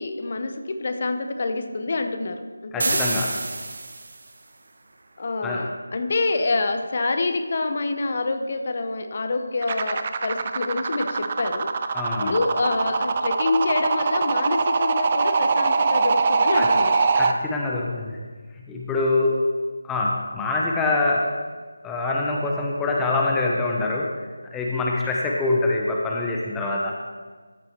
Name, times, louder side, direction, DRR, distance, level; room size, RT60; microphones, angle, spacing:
voice 1, 0.0-3.0 5.2-11.7 12.2-17.0, left 3 dB, 40° left, 7 dB, 0.9 m, -26 dB
voice 2, 2.7-3.4 5.4-5.7 11.9-12.4 16.5-16.7 17.2-18.2 18.7-21.5 21.8-26.9, left 2 dB, 5° left, -2 dB, 0.8 m, -25 dB
sound 1, 2.8-4.3, right 3 dB, 50° right, 0.9 m, -28 dB
sound 2, 9.6-17.3, right 4 dB, 30° right, 0.5 m, -22 dB
13.5 x 6.2 x 4.4 m, 1.4 s
figure-of-eight pair, 160°, 0 cm